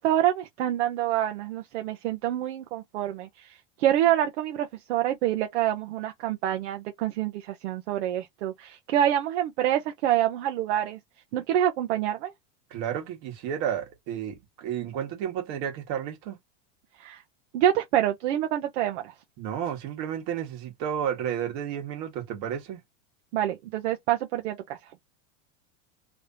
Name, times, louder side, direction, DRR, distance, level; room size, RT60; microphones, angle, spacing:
voice 1, 0.0-11.0 11.3-12.3 17.0-17.2 17.5-19.1 23.3-24.8, right 12 dB, 60° right, 0.9 m, -26 dB
voice 2, 12.7-16.4 19.4-22.8, right 9 dB, 45° right, 1.6 m, -32 dB
3.4 x 3.1 x 2.7 m
supercardioid pair, 165°, 38 cm